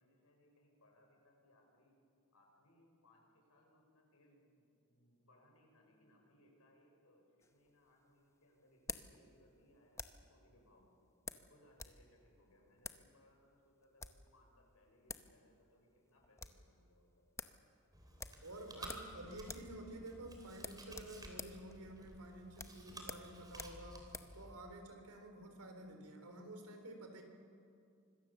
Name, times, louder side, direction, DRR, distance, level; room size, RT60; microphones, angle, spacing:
voice 1, 0.0-2.0 2.3-10.9 11.3-17.2, left 1 dB, 75° left, 1 dB, 5.9 m, -69 dB
sound 1, 7.4-10.3 11.3-12.0 12.3-12.4 12.8-13.1 13.8-14.3 14.8-14.9 15.1-15.3 15.6-15.7 16.0-16.6 17.0-17.1 17.4-17.6 18.2-19.2 19.4-19.8 20.0-20.2 20.6-24.4, left 4 dB, 15° left, 0.8 m, -49 dB
Chewing mastication, 17.9-24.5, right 1 dB, 15° right, 3.3 m, -54 dB
voice 2, 18.4-24.1 24.3-27.2, right 1 dB, 85° right, 4 dB, 3.8 m, -51 dB
25.5 x 21.5 x 7.1 m, 2.4 s
head